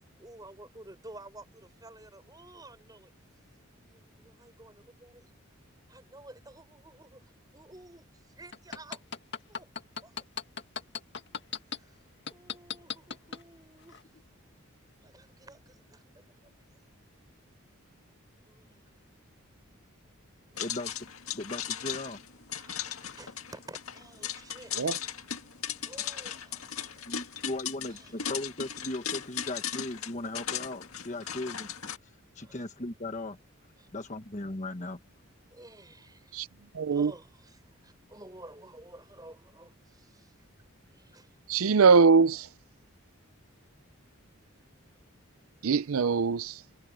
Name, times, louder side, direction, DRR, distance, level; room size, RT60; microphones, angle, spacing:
voice 1, 0.2-3.1 3.9-5.3 5.9-9.0 9.5-9.7 10.0-10.2 11.6-14.1 15.0-16.9 18.5-19.2 20.5-20.7 22.6-25.0 25.8-27.4 27.9-28.4 31.2-31.4 32.4-32.6 33.8-33.9 35.5-36.4 36.9-41.4, right 2 dB, 20° right, 6.8 m, -52 dB
sound 1, 8.5-11.8 12.3-13.4 13.9-14.0, left 6 dB, 55° left, 2.1 m, -35 dB
sound 2, 20.6-32.0, left 9 dB, 90° left, 1.9 m, -37 dB
voice 2, 20.6-20.9 21.3-22.2 27.1-31.9 32.3-33.4 33.9-35.0, left 2 dB, 35° left, 1.3 m, -37 dB
voice 3, 36.7-37.1 41.5-42.5 45.6-46.6, right 5 dB, 80° right, 0.5 m, -22 dB
head